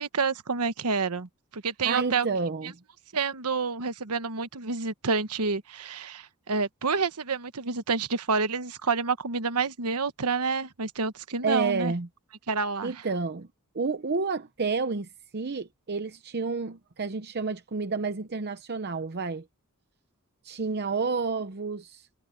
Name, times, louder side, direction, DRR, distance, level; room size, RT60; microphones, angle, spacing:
voice 1, 0.0-2.3 3.1-11.9 12.5-12.9, right 4 dB, 90° right, 1.2 m, -28 dB
voice 2, 1.8-2.8 11.4-12.1 12.8-13.5 13.7-19.4 20.4-22.1, right 4 dB, 45° right, 0.8 m, -30 dB
head